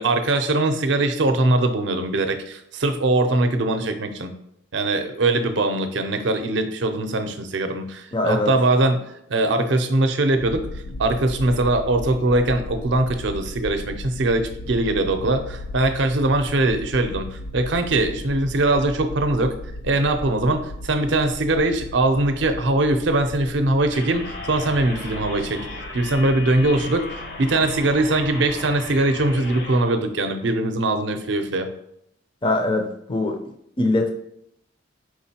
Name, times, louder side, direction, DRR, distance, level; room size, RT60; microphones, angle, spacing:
voice 1, 0.0-4.3 4.7-19.6 19.8-25.6 25.9-31.7, right 2 dB, 65° right, 7 dB, 0.5 m, -21 dB
voice 2, 8.1-8.5 32.4-33.4 33.8-34.1, left 2 dB, 25° left, 4 dB, 0.5 m, -22 dB
sound 1, 10.4-29.7, left 1 dB, 85° left, 0.4 m, -37 dB
sound 2, 23.9-29.8, left 3 dB, 55° left, 0.8 m, -36 dB
4.8 x 3.7 x 2.8 m, 0.76 s
head